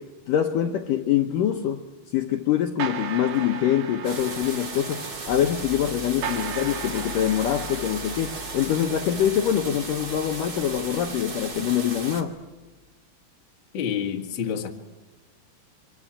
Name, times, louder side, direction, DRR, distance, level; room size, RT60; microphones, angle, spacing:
voice 1, 0.0-1.9 2.1-12.4, left 10 dB, 80° left, 1.9 m, -24 dB
sound 1, 2.8-9.7, right 8 dB, 80° right, 4.2 m, -37 dB
sound 2, 4.0-12.2, right 3 dB, 40° right, 1.4 m, -36 dB
sound 3, 5.3-12.8, left 7 dB, 15° left, 4.0 m, -45 dB
voice 2, 13.7-14.7, left 8 dB, 45° left, 1.6 m, -28 dB
26.5 x 24.5 x 8.8 m
omnidirectional pair, 5.1 m